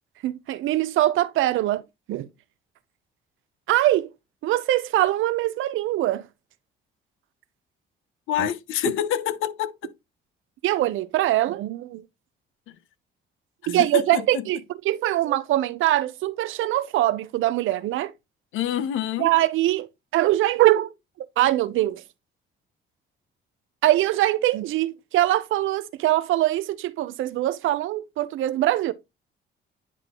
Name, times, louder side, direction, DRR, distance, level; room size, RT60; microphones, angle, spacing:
voice 1, 0.2-1.8 2.1-2.3 3.7-4.1 4.4-6.2 8.4-8.5 10.6-12.0 13.7-14.6 14.8-18.1 19.2-20.9 21.4-22.0 23.8-28.9, right 14 dB, 85° right, 0.7 m, -22 dB
voice 2, 8.3-9.9 12.7-12.8 13.9-14.4 18.5-19.3, left 10 dB, 85° left, 0.7 m, -27 dB
9.9 x 3.8 x 3.0 m
cardioid pair, 90°, 20 cm